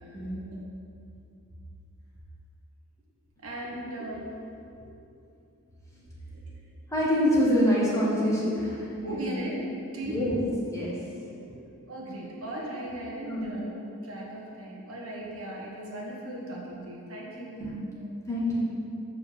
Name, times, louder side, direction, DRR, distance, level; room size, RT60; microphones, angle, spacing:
voice 1, 0.1-0.5 6.9-9.3 10.0-10.4 10.7-11.1 11.5-11.6 13.3-13.5 17.6-17.7 18.3-18.6, equal, 15° left, -7 dB, 1.5 m, -26 dB
voice 2, 3.4-4.3 6.3-6.4 9.0-9.7 9.9-10.5 11.9-13.8 14.0-17.6 18.0-18.1, right 1 dB, 70° right, -3 dB, 1.5 m, -37 dB
6.6 x 4.8 x 6.8 m, 2.7 s
head